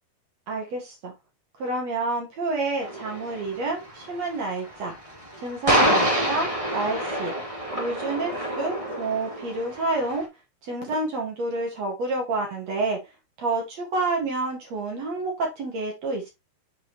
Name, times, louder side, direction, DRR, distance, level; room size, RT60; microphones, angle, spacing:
voice 1, 0.5-1.1 1.6-5.0 5.4-7.3 7.7-10.3 10.6-13.0 13.4-16.3, right 2 dB, 50° right, 1 dB, 2.2 m, -29 dB
sound 1, 2.8-10.2, equal, 15° right, 1.4 m, -27 dB
7.1 x 5.4 x 2.9 m, 0.22 s
omnidirectional pair, 5.2 m